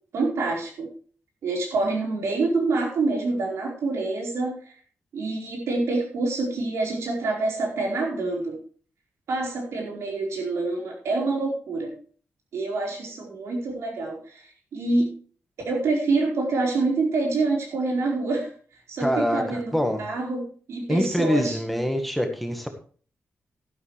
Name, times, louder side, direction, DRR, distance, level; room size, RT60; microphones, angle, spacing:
voice 1, 0.1-0.9 1.4-4.5 5.1-8.6 9.3-11.9 12.5-15.1 15.6-18.5 18.9-21.6, right 3 dB, 90° right, 0 dB, 4.5 m, -26 dB
voice 2, 19.0-20.1 20.9-22.7, equal, ahead, 5 dB, 1.5 m, -25 dB
12.0 x 11.5 x 3.3 m, 0.42 s
wide cardioid pair, 145°, 4 cm